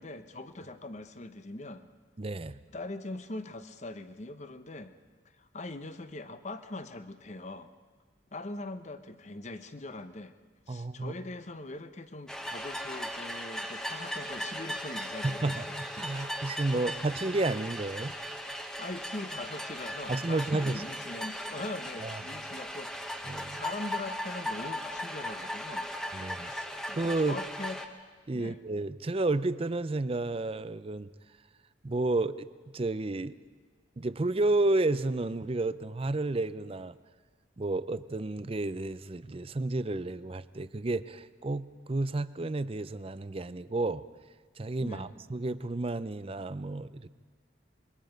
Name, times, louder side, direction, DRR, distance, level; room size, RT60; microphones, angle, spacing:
voice 1, 0.0-1.9 2.7-4.9 5.3-7.7 8.3-10.3 10.7-15.8 16.7-16.9 18.8-25.9 26.5-27.8 28.3-28.6 44.8-45.1, left 2 dB, 40° left, 10 dB, 0.9 m, -42 dB
voice 2, 2.2-2.6 10.7-11.2 15.2-18.1 20.1-20.8 22.0-22.2 23.3-23.6 26.1-27.4 28.3-31.1 31.8-32.5 32.7-33.4 34.0-37.0 37.6-44.0 44.6-47.1, right 2 dB, 30° right, 15 dB, 0.5 m, -31 dB
sound 1, 12.3-27.9, equal, 5° left, 1.1 m, -38 dB
26.0 x 22.5 x 5.2 m, 1.5 s
head